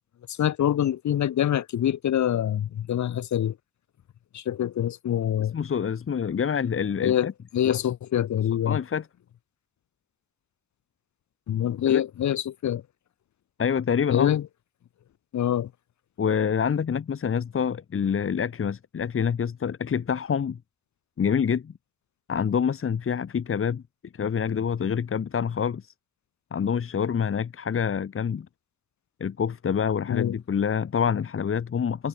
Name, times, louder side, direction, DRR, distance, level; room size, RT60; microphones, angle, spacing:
voice 1, 0.3-3.6 4.3-5.5 7.0-8.8 11.5-12.8 14.1-14.5 15.3-15.7 30.1-30.3, left 10 dB, 70° left, 6.6 m, -25 dB
voice 2, 5.5-7.3 7.6-7.7 8.6-9.1 11.9-12.0 13.6-14.3 16.2-20.6 21.2-21.7 22.3-23.8 24.1-25.9 26.5-28.5 29.2-32.1, left 7 dB, 45° left, 2.9 m, -26 dB
cardioid pair, 90°, 30 cm